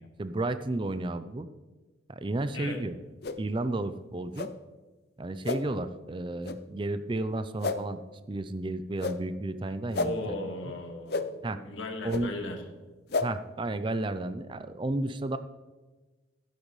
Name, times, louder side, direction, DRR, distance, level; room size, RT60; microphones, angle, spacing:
voice 1, 0.2-1.5 2.1-3.0 3.4-4.5 5.2-8.0 8.3-10.4 11.4-11.6 12.0-12.3 13.2-15.4, right 2 dB, 25° right, 11 dB, 0.4 m, -32 dB
sound 1, 3.2-3.4 4.3-4.5 5.4-5.6 6.4-6.6 7.6-7.8 9.0-9.2 9.9-10.1 11.1-11.2 12.1-12.2 13.1-13.3, left 3 dB, 55° left, 0.6 m, -30 dB
voice 2, 10.0-11.3 11.5-12.6, left 2 dB, 85° left, 3 dB, 1.7 m, -37 dB
12.0 x 10.5 x 3.2 m, 1.2 s
head